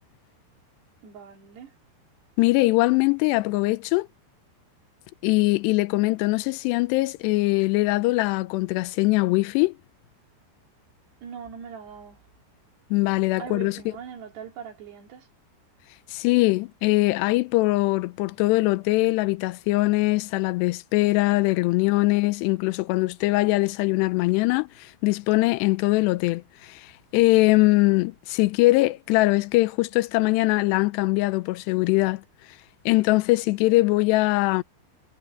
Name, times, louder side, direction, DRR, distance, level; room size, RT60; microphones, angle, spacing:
voice 1, 1.0-1.8 11.2-12.2 13.4-15.3, right 7 dB, 75° right, 5.1 m, -41 dB
voice 2, 2.4-4.1 5.2-9.7 12.9-13.8 16.1-32.2 32.9-34.6, left 21 dB, 85° left, 2.8 m, -22 dB
omnidirectional pair, 4.8 m